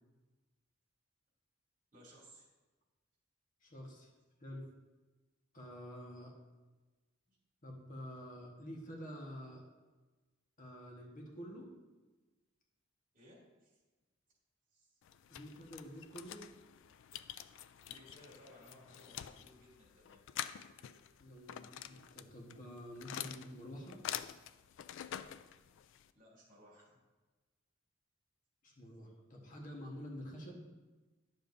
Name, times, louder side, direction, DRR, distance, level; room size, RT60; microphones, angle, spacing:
voice 1, 1.9-2.5 7.3-7.4 13.1-13.8 14.7-14.9 17.8-20.2 26.1-27.0, equal, 40° right, -3 dB, 2.8 m, -60 dB
voice 2, 3.6-4.1 4.4-4.7 5.5-6.3 7.6-9.6 10.6-11.7 15.3-16.5 21.2-24.0 28.6-30.7, equal, 40° left, -1 dB, 1.3 m, -48 dB
sound 1, 15.0-26.1, left 10 dB, 65° left, 0.3 m, -47 dB
10.0 x 7.0 x 2.6 m, 1.2 s
head